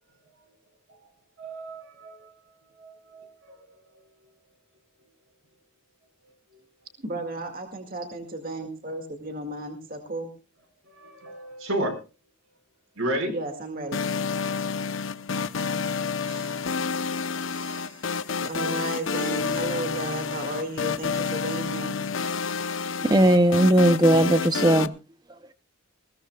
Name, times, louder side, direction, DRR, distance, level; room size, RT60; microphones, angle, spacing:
voice 1, 1.4-4.1 6.2-6.6 10.8-12.0 12.9-13.3, right 1 dB, 70° right, 4.9 m, -34 dB
voice 2, 7.0-10.3 13.3-14.0 16.1-16.6 17.4-22.1 22.5-22.7, right 2 dB, 40° right, 2.1 m, -34 dB
sound 1, 13.9-24.9, left 5 dB, 60° left, 0.7 m, -29 dB
voice 3, 23.0-24.9, right 1 dB, 20° right, 0.6 m, -18 dB
21.0 x 17.0 x 2.3 m
head